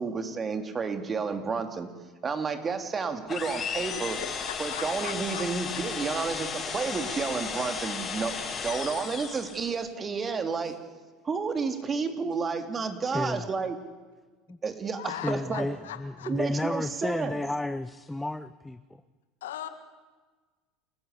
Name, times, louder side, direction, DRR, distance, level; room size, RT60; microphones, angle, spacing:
voice 1, 0.0-1.9 2.2-4.2 4.6-10.8 11.2-13.8 14.6-15.7 16.3-17.4, right 5 dB, 30° right, 7 dB, 3.0 m, -31 dB
sound 1, 3.3-9.8, left 6 dB, 35° left, 5.2 m, -34 dB
voice 2, 3.8-5.5 15.0-16.3 19.4-19.7, left 11 dB, 80° left, 9 dB, 2.0 m, -40 dB
voice 3, 13.1-13.5 14.5-14.6 15.1-18.8, left 2 dB, 10° left, 13 dB, 0.8 m, -32 dB
29.0 x 15.0 x 8.4 m, 1.3 s
hypercardioid pair, 80°, 0 cm